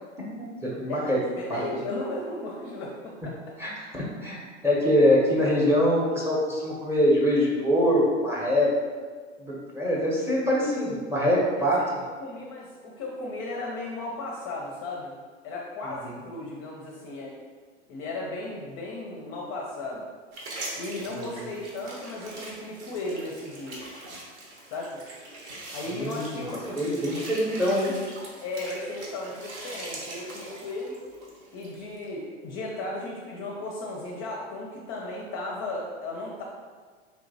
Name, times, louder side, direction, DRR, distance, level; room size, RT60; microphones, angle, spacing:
voice 1, 0.4-1.2 1.5-1.6 3.6-8.7 9.4-11.8 16.0-16.2 21.1-21.5 25.9-27.9, equal, 5° right, -4 dB, 0.7 m, -24 dB
voice 2, 0.9-3.4 11.8-11.9 12.2-15.1 15.4-17.3 17.9-20.0 20.8-23.8 24.7-25.0 25.7-26.6 28.4-30.9 31.5-36.4, left 2 dB, 35° left, -2 dB, 0.5 m, -35 dB
sound 1, 20.3-32.1, right 2 dB, 65° right, 1.0 m, -42 dB
3.4 x 2.9 x 2.6 m, 1.5 s
figure-of-eight pair, 90°, 37 cm